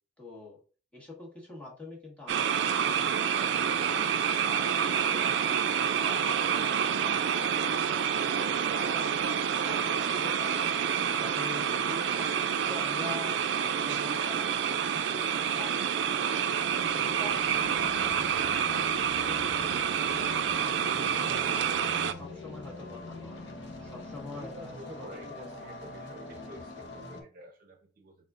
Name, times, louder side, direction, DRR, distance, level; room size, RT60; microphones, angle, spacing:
voice 1, 0.2-0.6 0.9-4.2 4.4-5.6 5.9-9.1 9.6-10.7 11.2-16.4 16.9-18.2 18.6-21.8 22.1-23.5 23.8-25.6, left 3 dB, 5° left, -3 dB, 1.4 m, -46 dB
sound 1, 2.3-22.1, right 8 dB, 70° right, 0.4 m, -28 dB
sound 2, 16.5-27.2, left 2 dB, 75° left, 0.9 m, -44 dB
voice 2, 24.3-28.2, equal, 50° right, 3 dB, 0.7 m, -49 dB
4.1 x 3.6 x 2.5 m, 0.38 s
head